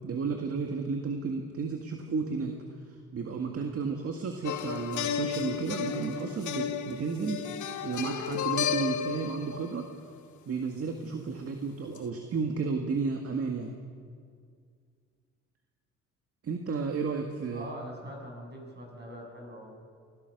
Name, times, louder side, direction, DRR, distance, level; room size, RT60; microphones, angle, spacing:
voice 1, 0.0-2.6 2.9-7.5 7.8-9.9 10.5-13.7 16.4-17.7, right 5 dB, 50° right, 4 dB, 1.9 m, -32 dB
sound 1, 4.4-10.2 11.9-12.0, left 8 dB, 75° left, 1.2 m, -33 dB
voice 2, 17.5-19.9, equal, 35° right, 0 dB, 7.7 m, -43 dB
23.5 x 16.5 x 6.7 m, 2.1 s
cardioid pair, 90°, 30 cm